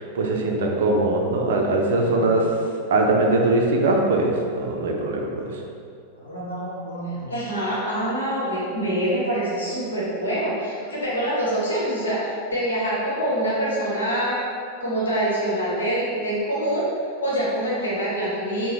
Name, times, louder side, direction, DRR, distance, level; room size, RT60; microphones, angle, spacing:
voice 1, 0.0-2.5 2.9-5.6, right 2 dB, 60° right, 1 dB, 0.4 m, -21 dB
voice 2, 6.2-14.4 14.8-16.9 17.2-18.7, right 1 dB, 75° left, -7 dB, 1.0 m, -25 dB
3.7 x 2.1 x 3.2 m, 2.3 s
figure-of-eight pair, 90°, 0 cm